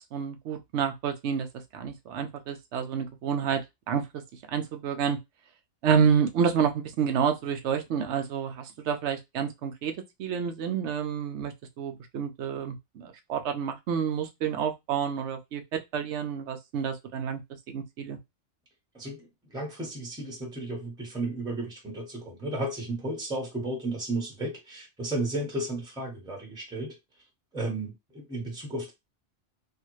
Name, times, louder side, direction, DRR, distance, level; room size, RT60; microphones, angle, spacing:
voice 1, 0.1-1.5 1.7-3.6 3.9-4.0 4.5-5.2 5.8-9.9 10.2-15.6 15.9-17.4 17.7-18.2, right 7 dB, 70° right, 0.9 m, -29 dB
voice 2, 18.9-26.9 27.5-28.9, right 2 dB, 5° right, 1.1 m, -33 dB
3.3 x 2.4 x 3.1 m
omnidirectional pair, 1.2 m